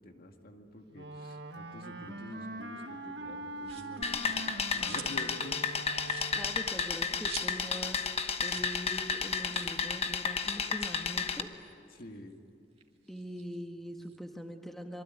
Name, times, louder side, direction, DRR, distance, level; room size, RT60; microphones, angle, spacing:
voice 1, 0.0-5.6 11.9-12.4, left 1 dB, 50° left, 4 dB, 2.1 m, -48 dB
Wind instrument woodwind instrument, 0.9-6.7, right 2 dB, 65° right, 1.8 m, -43 dB
sound 1, 3.6-4.1 4.5-5.3 5.6-5.7 6.0-7.9 8.1-8.2 8.4-8.8 9.0-9.1 9.5-9.8 10.6-12.3 12.7-14.2, right 7 dB, 30° right, 2.3 m, -48 dB
sound 2, 4.0-11.4, left 5 dB, 35° left, 1.1 m, -32 dB
voice 2, 6.3-8.0 8.4-11.5 13.1-15.0, equal, ahead, 3 dB, 1.6 m, -42 dB
26.0 x 23.5 x 9.6 m, 2.4 s
head